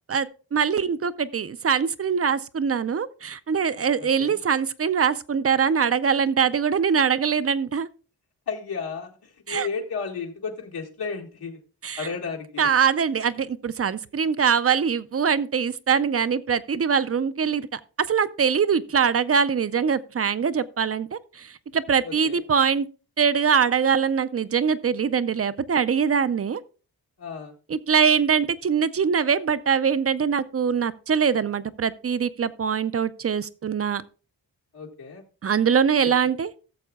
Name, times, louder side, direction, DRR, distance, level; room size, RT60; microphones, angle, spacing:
voice 1, 0.5-7.9 9.5-9.7 11.8-12.1 12.6-17.8 18.1-22.9 23.2-26.6 27.7-34.0 35.4-36.5, right 6 dB, 40° right, 0.5 m, -23 dB
voice 2, 4.0-4.4 8.5-11.6 12.0-12.7 22.0-22.4 27.2-27.5 34.7-35.2 36.0-36.1, left 5 dB, 80° left, 1.7 m, -33 dB
17.0 x 7.0 x 2.3 m
wide cardioid pair, 115°, 38 cm